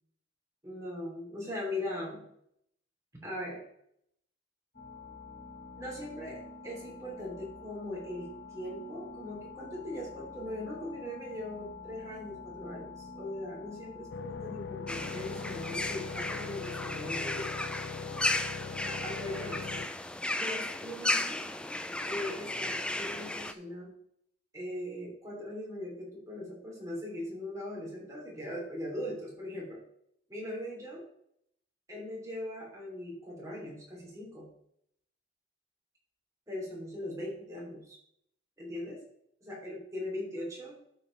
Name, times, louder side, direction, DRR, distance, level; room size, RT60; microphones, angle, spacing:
voice 1, 0.6-2.2 3.2-3.6 5.8-17.5 18.8-19.8 20.3-21.4 22.0-23.9 24.5-29.8 30.3-31.0 31.9-34.5 36.5-38.0 38.6-39.0 39.4-40.8, left 1 dB, 15° right, -3 dB, 3.1 m, -40 dB
sound 1, 4.7-16.2, left 4 dB, 40° left, 4.2 m, -47 dB
sound 2, 14.1-19.9, left 5 dB, 70° left, 0.4 m, -41 dB
sound 3, 14.9-23.5, left 1 dB, 5° left, 0.3 m, -35 dB
12.0 x 6.6 x 3.3 m, 0.72 s
head